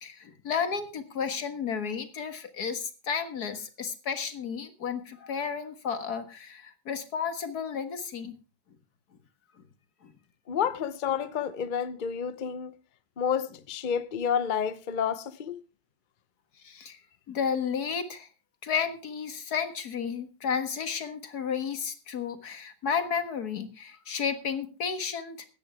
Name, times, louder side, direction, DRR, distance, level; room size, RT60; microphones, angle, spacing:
voice 1, 0.0-8.4 10.0-10.1 16.6-17.0 17.3-18.3 18.6-25.5, left 6 dB, 55° left, 2.0 m, -32 dB
voice 2, 10.5-12.7 13.2-15.6, left 7 dB, 75° left, 0.4 m, -30 dB
16.5 x 12.5 x 3.5 m
omnidirectional pair, 2.1 m